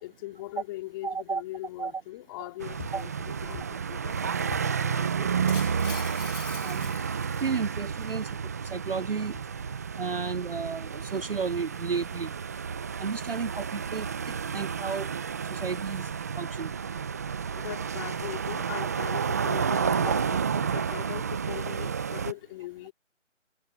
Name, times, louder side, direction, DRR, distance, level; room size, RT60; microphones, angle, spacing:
voice 1, 0.0-5.3 17.5-22.9, left 18 dB, 15° left, 4.1 m, -40 dB
voice 2, 1.0-1.4 1.8-1.9 2.9-3.0 6.6-8.3 8.7-9.4 10.0-12.3 13.0-15.1 15.5-16.1 16.4-16.7, right 5 dB, 50° right, 0.6 m, -33 dB
sound 1, 2.6-22.3, right 6 dB, 15° right, 0.9 m, -31 dB
Shatter, 5.5-7.9, left 5 dB, 65° left, 1.8 m, -43 dB
figure-of-eight pair, 160°, 38 cm